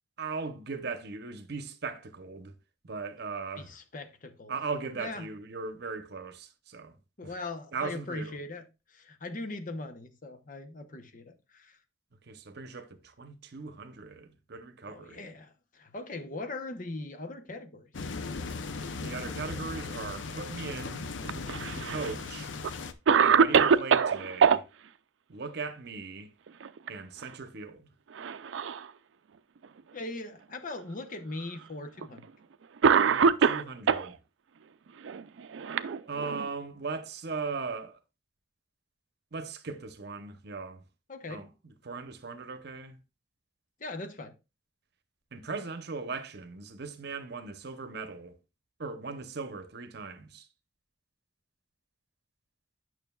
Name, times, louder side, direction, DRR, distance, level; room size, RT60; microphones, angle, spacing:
voice 1, 0.2-2.5 2.8-3.7 4.5-7.0 7.2-7.3 7.7-8.4 12.3-15.4 19.0-21.0 21.8-22.5 23.2-24.6 25.3-26.3 26.9-27.9 32.8-34.2 36.1-38.0 39.3-40.8 41.3-43.0 45.3-48.4 48.8-50.5, right 4 dB, 60° right, 0.8 m, -38 dB
voice 2, 3.5-4.6 5.0-5.3 7.2-11.8 14.9-17.9 29.9-32.3 41.1-41.4 43.8-44.4, left 2 dB, 45° left, 0.9 m, -40 dB
sound 1, 17.9-22.9, left 4 dB, 80° left, 0.6 m, -38 dB
Cough, 21.2-22.1 22.6-22.7 23.1-24.6 26.5-26.9 27.2-27.3 28.2-28.9 29.6-29.7 30.8-30.9 32.0-32.2 32.8-34.1 35.0-36.5, right 6 dB, 80° right, 0.4 m, -24 dB
9.1 x 6.1 x 2.3 m
head